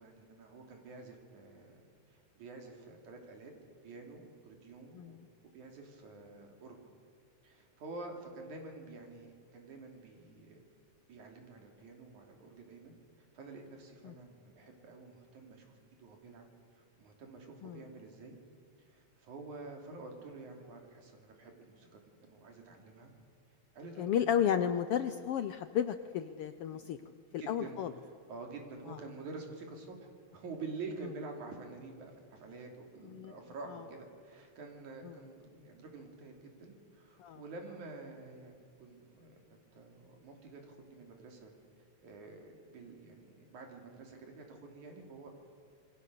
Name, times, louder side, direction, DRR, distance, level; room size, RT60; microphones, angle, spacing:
voice 1, 0.0-3.5 3.8-5.2 5.5-6.8 7.4-10.7 11.1-15.7 16.0-16.5 16.7-18.3 18.8-23.1 23.7-24.3 26.7-27.1 27.4-30.0 30.3-39.4 39.7-41.5 42.0-45.3, right 3 dB, 75° right, 2 dB, 4.3 m, -48 dB
voice 2, 24.0-27.0 27.3-27.9 33.1-33.3 37.2-37.4, left 9 dB, 80° left, 10 dB, 1.3 m, -32 dB
27.5 x 22.5 x 6.8 m, 2.3 s
omnidirectional pair, 3.4 m